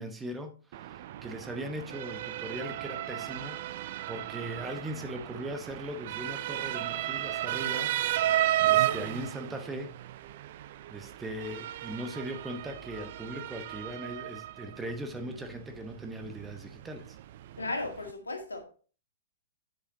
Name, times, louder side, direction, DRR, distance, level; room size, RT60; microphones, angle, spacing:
voice 1, 0.0-7.9 8.7-9.9 10.9-17.2, right 1 dB, 10° right, 6 dB, 1.0 m, -39 dB
Motor vehicle (road) / Siren, 0.7-18.1, right 13 dB, 50° right, 0.4 m, -34 dB
voice 2, 17.6-18.6, left 2 dB, 80° left, 3 dB, 2.0 m, -35 dB
8.3 x 7.6 x 2.8 m, 0.40 s
figure-of-eight pair, 115°, 0 cm